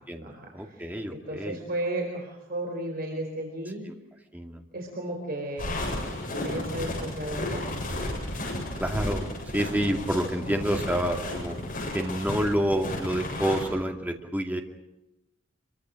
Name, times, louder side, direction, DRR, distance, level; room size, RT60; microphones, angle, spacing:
voice 1, 0.1-1.6 4.3-4.6 8.8-9.2 9.5-11.6 11.9-14.6, equal, 10° right, 3 dB, 2.3 m, -28 dB
voice 2, 0.8-3.8 4.7-5.9 6.3-7.8, right 1 dB, 50° right, 1 dB, 4.6 m, -34 dB
sound 1, 5.6-13.6, left 1 dB, 45° left, 7.8 m, -33 dB
26.0 x 23.5 x 6.5 m, 0.92 s
head